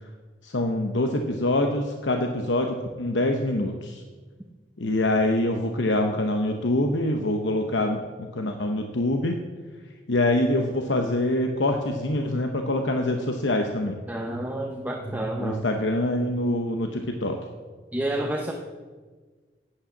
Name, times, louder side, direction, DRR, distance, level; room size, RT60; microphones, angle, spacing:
voice 1, 0.4-4.0 4.8-9.4 10.1-14.0 15.4-17.4, left 1 dB, 85° left, 4 dB, 0.9 m, -25 dB
voice 2, 14.1-15.9 17.9-18.5, right 1 dB, 10° right, 1 dB, 0.7 m, -29 dB
9.8 x 8.5 x 7.1 m, 1.4 s
head